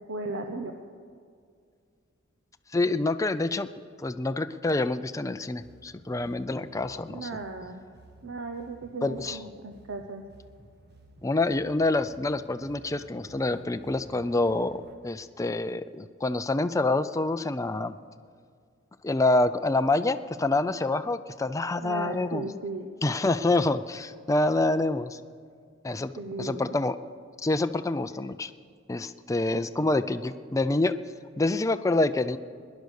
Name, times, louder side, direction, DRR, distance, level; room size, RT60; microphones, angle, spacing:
voice 1, 0.1-0.7 7.1-7.8 8.2-10.2 21.8-22.9 26.2-26.8, right 3 dB, 75° right, 4 dB, 0.9 m, -36 dB
voice 2, 2.7-3.7 4.0-7.3 9.0-9.4 11.2-17.9 19.0-22.4 23.0-25.2 25.8-26.1 26.4-27.0 27.4-28.5 28.9-30.9 31.4-32.4, left 2 dB, 15° left, 10 dB, 0.4 m, -27 dB
sound 1, 5.6-14.9, right 2 dB, 55° right, 1.4 m, -54 dB
19.5 x 10.5 x 6.5 m, 2.1 s
head